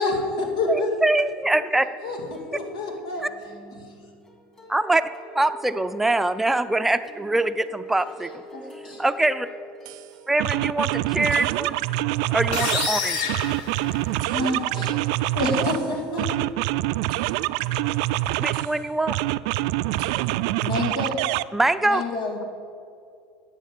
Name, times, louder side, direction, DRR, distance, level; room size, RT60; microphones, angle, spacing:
voice 1, 0.0-0.9 2.0-2.2 2.5-3.2 8.5-9.0 13.8-13.9 14.2-15.0 15.3-15.7 16.1-16.3 20.6-21.2 21.8-22.4, left 2 dB, 90° left, 1 dB, 2.5 m, -27 dB
voice 2, 0.7-1.9 3.2-3.3 4.7-5.0 5.3-8.4 9.0-9.5 10.3-11.8 12.3-13.4 18.4-19.2 21.5-22.0, right 2 dB, 5° right, 10 dB, 0.5 m, -23 dB
sound 1, 1.8-11.9, equal, 20° left, 2.6 m, -46 dB
sound 2, 9.8-10.0 10.4-12.9 13.3-15.8 16.2-18.7 19.1-21.4, right 16 dB, 70° right, 0.3 m, -25 dB
sound 3, 12.5-14.5, left 5 dB, 70° left, 1.6 m, -28 dB
voice 3, 15.5-16.5 19.8-20.3, left 4 dB, 40° left, 8 dB, 1.2 m, -39 dB
11.0 x 7.4 x 8.4 m, 2.4 s
supercardioid pair, 115°, 3 cm